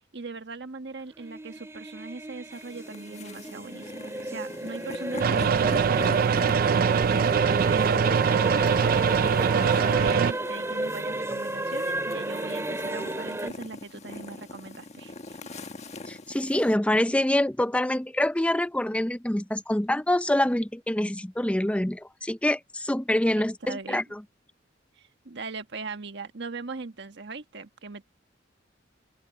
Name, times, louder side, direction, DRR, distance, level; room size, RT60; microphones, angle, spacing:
voice 1, 0.1-6.8 7.7-8.2 8.8-15.4 23.4-24.0 25.0-28.0, right 3 dB, 65° right, 1.5 m, -39 dB
sound 1, 1.1-13.5, right 1 dB, 15° right, 2.1 m, -33 dB
sound 2, 2.5-16.8, left 2 dB, 40° left, 1.4 m, -43 dB
sound 3, 5.2-10.3, right 6 dB, 50° right, 0.4 m, -22 dB
voice 2, 16.1-24.2, left 1 dB, 5° left, 0.5 m, -26 dB
open air
head